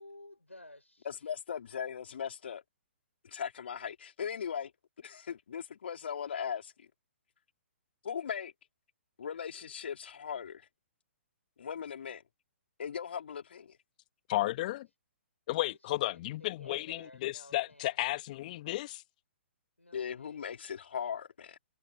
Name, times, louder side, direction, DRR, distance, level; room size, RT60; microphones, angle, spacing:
voice 1, 0.0-1.1 15.7-18.0 19.8-20.5, left 1 dB, 90° left, 4.7 m, -54 dB
voice 2, 1.0-2.6 3.2-4.7 5.0-6.9 8.0-8.5 9.2-10.7 11.6-12.2 12.8-13.8 19.9-21.6, left 7 dB, 60° left, 2.9 m, -38 dB
voice 3, 14.3-14.9 15.5-19.0, left 16 dB, 40° left, 1.4 m, -33 dB
figure-of-eight pair, 125°, 7 cm